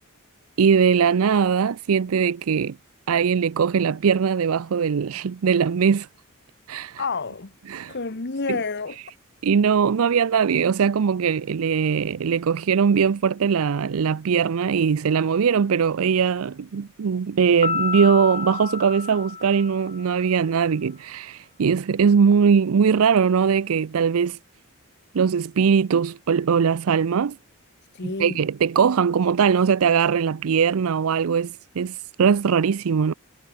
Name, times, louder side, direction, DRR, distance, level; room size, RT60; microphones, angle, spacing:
voice 1, 0.6-2.8 3.1-6.1 6.7-7.0 7.7-8.0 8.5-8.6 9.4-24.4 25.1-27.4 28.0-33.1, right 6 dB, 70° right, 0.5 m, -21 dB
voice 2, 7.0-7.5 7.9-9.0 27.9-28.4, left 4 dB, 50° left, 1.2 m, -29 dB
Piano, 17.6-20.2, left 5 dB, 30° left, 2.4 m, -30 dB
head